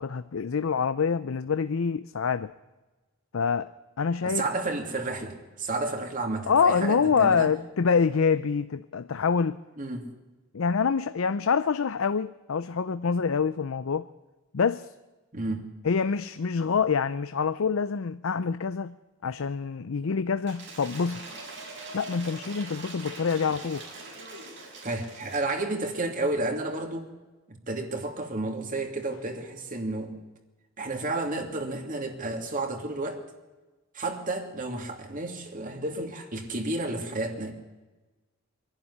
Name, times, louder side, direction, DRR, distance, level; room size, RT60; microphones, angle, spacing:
voice 1, 0.0-2.5 3.3-3.7 4.0-4.4 6.5-9.6 10.5-14.1 14.5-14.9 15.8-19.0 19.2-21.4 21.9-23.9, left 5 dB, 80° left, 13 dB, 0.5 m, -26 dB
voice 2, 4.2-7.5 9.8-10.1 15.3-15.7 24.8-27.1 27.7-30.2 30.8-33.2 33.9-37.5, right 2 dB, 40° right, 4 dB, 2.6 m, -31 dB
Cheering / Applause / Crowd, 20.4-25.7, right 3 dB, 60° right, 5.6 m, -43 dB
23.5 x 11.5 x 9.7 m, 1.2 s
head